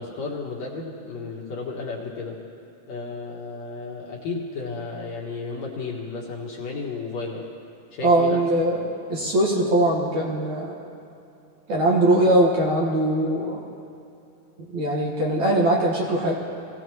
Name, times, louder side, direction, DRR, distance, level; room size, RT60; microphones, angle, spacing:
voice 1, 0.0-2.4 2.9-7.5 7.9-8.4, left 4 dB, 60° left, -2 dB, 2.3 m, -33 dB
voice 2, 8.0-8.8 9.1-10.8 11.7-13.6 14.7-16.4, right 1 dB, 60° right, -3 dB, 2.7 m, -21 dB
22.5 x 16.5 x 3.1 m, 2.8 s
omnidirectional pair, 4.1 m